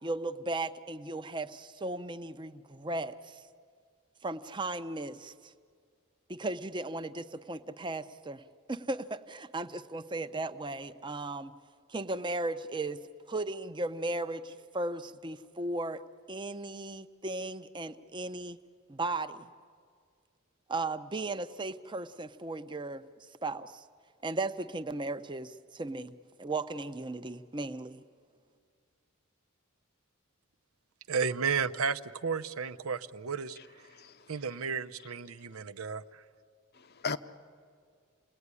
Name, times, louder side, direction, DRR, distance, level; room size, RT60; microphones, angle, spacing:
voice 1, 0.0-3.4 4.2-5.5 6.3-8.4 8.7-11.5 11.9-13.0 13.3-16.0 16.3-18.6 18.9-19.5 20.7-23.0 23.4-23.8 24.2-28.0, right 2 dB, 20° right, 0.7 m, -36 dB
voice 2, 31.1-33.9 34.3-36.2, right 5 dB, 85° right, 0.8 m, -33 dB
voice 3, 33.9-34.3 36.7-37.2, left 5 dB, 50° left, 0.8 m, -37 dB
29.0 x 19.0 x 9.8 m
head